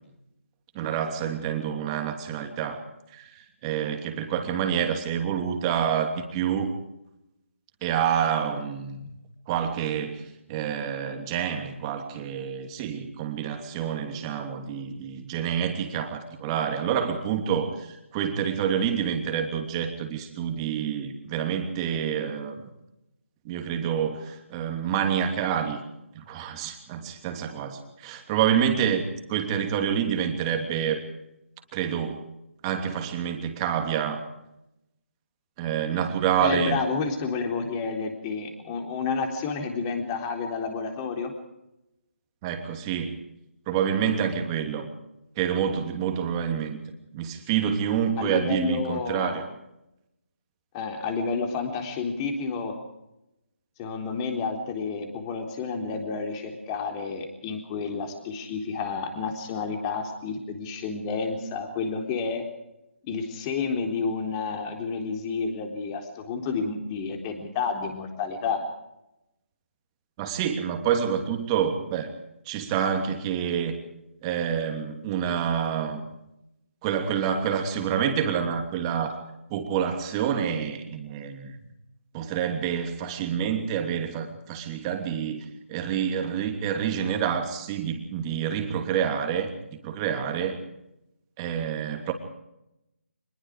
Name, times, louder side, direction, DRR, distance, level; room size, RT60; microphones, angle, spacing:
voice 1, 0.7-2.8 3.1-6.7 7.8-9.1 9.5-22.6 23.4-25.8 26.1-31.0 31.7-32.3 32.6-34.2 35.6-36.8 42.4-43.2 43.7-44.9 45.4-46.8 47.1-49.4 70.2-72.1 72.4-73.7 74.2-76.0 76.8-79.2 79.5-81.6 82.1-90.6 91.4-92.1, right 8 dB, 20° right, 5 dB, 3.0 m, -28 dB
voice 2, 36.4-41.3 48.2-49.4 50.7-52.7 53.8-62.4 63.0-68.6, left 5 dB, 20° left, 4 dB, 3.9 m, -30 dB
25.0 x 21.5 x 5.0 m, 0.87 s
figure-of-eight pair, 155°, 7 cm